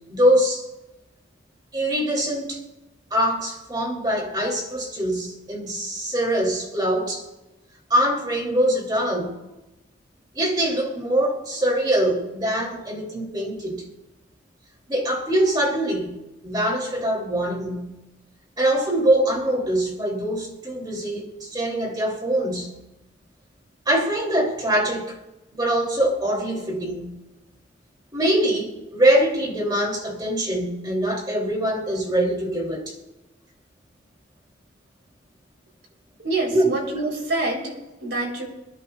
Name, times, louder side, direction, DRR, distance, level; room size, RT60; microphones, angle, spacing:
voice 1, 0.1-0.6 1.7-2.6 3.1-7.2 7.9-9.3 10.3-13.8 14.9-16.2 16.4-17.9 18.6-22.7 23.9-25.1 25.5-27.1 28.1-32.9 36.5-36.9, right 1 dB, 20° right, 1 dB, 2.8 m, -23 dB
voice 2, 36.2-38.4, right 2 dB, 65° right, 1 dB, 3.6 m, -26 dB
27.5 x 10.5 x 2.3 m, 1.0 s
head